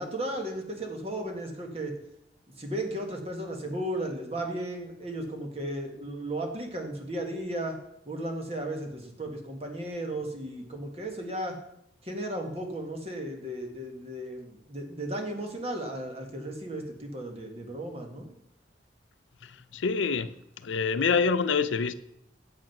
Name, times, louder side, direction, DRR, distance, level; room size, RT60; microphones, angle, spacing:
voice 1, 0.0-1.9 2.6-7.8 8.0-11.6 12.0-18.3, right 1 dB, 30° right, 1.7 m, -35 dB
voice 2, 19.4-21.9, left 5 dB, 80° left, 0.5 m, -27 dB
8.7 x 7.4 x 6.0 m
head